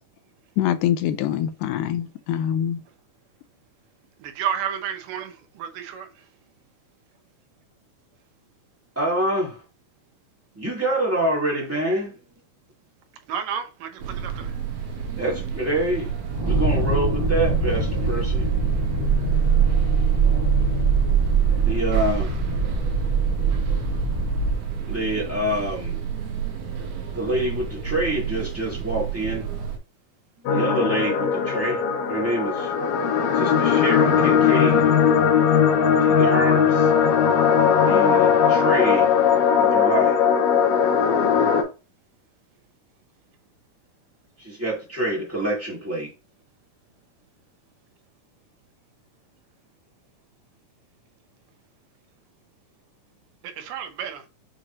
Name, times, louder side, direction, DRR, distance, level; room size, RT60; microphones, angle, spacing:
voice 1, 0.6-2.8, left 10 dB, 90° left, 2.1 m, -24 dB
voice 2, 4.4-5.3 5.6-6.1 13.3-13.9 53.7-54.2, right 8 dB, 90° right, 2.4 m, -29 dB
voice 3, 8.9-9.6 10.5-12.2 15.2-16.1 16.4-18.5 21.6-22.3 24.3-26.0 27.1-29.5 30.4-32.7 33.3-35.1 36.0-36.9 37.8-39.1 39.6-40.2 44.4-46.1, right 1 dB, 10° right, 0.7 m, -26 dB
sound 1, 14.0-29.8, right 7 dB, 65° right, 2.2 m, -31 dB
sound 2, 16.3-24.6, right 4 dB, 40° right, 0.3 m, -22 dB
sound 3, 30.5-41.6, left 7 dB, 70° left, 1.8 m, -19 dB
6.8 x 2.8 x 2.8 m
omnidirectional pair, 3.6 m